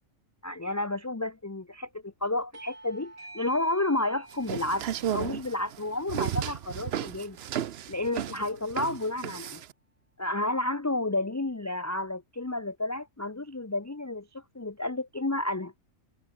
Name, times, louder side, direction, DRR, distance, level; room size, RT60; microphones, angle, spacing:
voice 1, 0.4-4.8 5.1-7.4 7.9-9.6 10.2-15.7, left 2 dB, 15° left, 0.8 m, -31 dB
Bell / Doorbell, 2.5-7.6, right 2 dB, 80° right, 7.1 m, -51 dB
sound 1, 4.3-9.7, right 10 dB, 55° right, 0.9 m, -33 dB
omnidirectional pair, 1.4 m